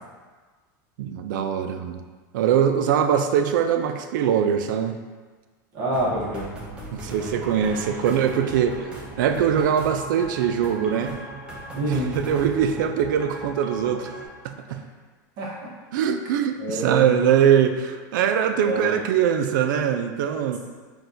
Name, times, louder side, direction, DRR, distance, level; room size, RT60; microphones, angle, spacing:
voice 1, 1.0-2.0 2.3-5.0 6.9-8.9 9.2-11.2 11.8-14.1 14.7-14.8 15.9-20.6, right 8 dB, 90° right, 7 dB, 0.4 m, -22 dB
voice 2, 5.7-6.5 11.7-12.1 15.4-15.7 16.6-17.1 18.7-18.9, right 1 dB, 45° right, -6 dB, 1.0 m, -26 dB
sound 1, 5.9-14.3, right 1 dB, 10° right, 0.5 m, -38 dB
5.9 x 2.3 x 2.6 m, 1.4 s
supercardioid pair, 165°, 10 cm